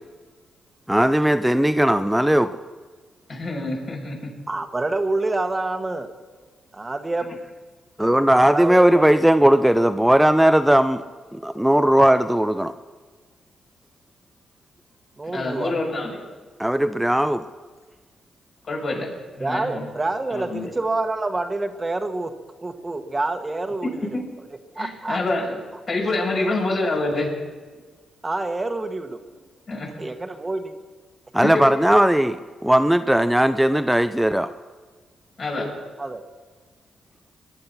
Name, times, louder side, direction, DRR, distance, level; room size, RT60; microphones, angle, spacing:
voice 1, 0.9-2.5 8.0-11.0 11.3-12.7 16.6-17.4 31.3-34.5, right 1 dB, 5° right, 10 dB, 0.6 m, -18 dB
voice 2, 3.3-4.3 15.3-16.2 18.6-19.1 19.3-19.9 20.3-20.7 23.8-24.2 24.8-25.6 25.9-27.3 29.7-29.9 31.4-31.8 35.4-35.7, left 2 dB, 55° left, -1 dB, 6.6 m, -26 dB
voice 3, 4.5-6.1 6.7-7.4 8.5-9.0 15.2-15.7 19.4-22.3 22.6-24.1 24.7-25.2 26.3-26.4 28.2-29.2 30.0-30.7 36.0-36.2, right 2 dB, 25° right, 6 dB, 1.4 m, -27 dB
21.0 x 10.5 x 5.9 m, 1.4 s
supercardioid pair, 55°, 0 cm